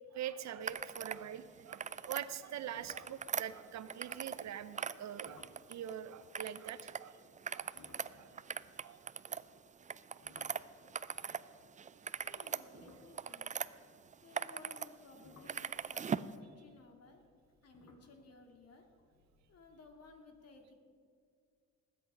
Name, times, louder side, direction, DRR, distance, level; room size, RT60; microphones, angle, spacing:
voice 1, 0.1-7.2 7.5-7.7 8.1-8.3 8.8-9.0 10.1-10.2 12.2-12.4, right 10 dB, 65° right, 13 dB, 0.8 m, -44 dB
sound 1, 0.6-1.3 1.6-2.0 2.3-2.4 2.8-4.1 5.2-5.7 7.6-11.2 12.0-14.2 14.8-20.1, left 3 dB, 75° left, 2.0 m, -64 dB
sound 2, 0.6-1.2 1.6-2.3 2.7-4.5 4.7-5.9 6.3-7.0 7.3-11.4 11.8-13.7 14.1-14.9 15.2-16.3, right 7 dB, 25° right, 0.4 m, -40 dB
voice 2, 12.2-13.5 14.2-17.2 17.6-18.9 19.5-20.8, left 3 dB, 55° left, 4 dB, 2.4 m, -58 dB
19.5 x 8.5 x 5.4 m, 2.2 s
cardioid pair, 90°, 30 cm